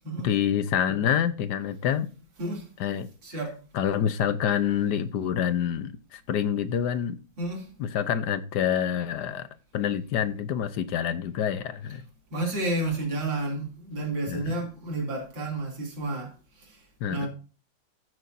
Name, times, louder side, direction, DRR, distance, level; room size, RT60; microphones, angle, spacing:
voice 1, 0.2-2.1 2.8-3.1 3.7-7.2 7.8-9.5 9.7-12.0 14.3-14.5 17.0-17.3, left 9 dB, 70° left, 1.3 m, -27 dB
voice 2, 3.2-3.6 7.4-7.7 12.3-17.3, right 2 dB, 80° right, 3.7 m, -31 dB
14.0 x 7.8 x 2.6 m
omnidirectional pair, 2.0 m